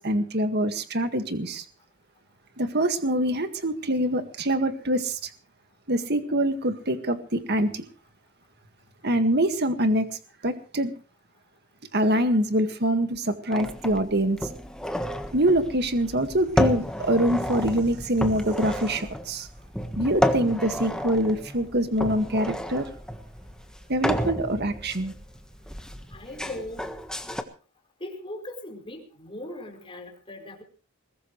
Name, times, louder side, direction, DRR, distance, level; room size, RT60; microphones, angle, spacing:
voice 1, 0.0-1.6 2.6-5.3 5.9-7.8 9.0-10.2 10.4-10.9 11.9-14.4 15.3-19.5 19.9-22.9 23.9-25.1, right 1 dB, 50° right, 1.8 m, -24 dB
sound 1, 13.5-27.4, equal, 5° left, 1.4 m, -31 dB
voice 2, 26.1-27.1 28.0-30.6, left 1 dB, 25° left, 4.7 m, -39 dB
21.5 x 18.5 x 3.2 m
head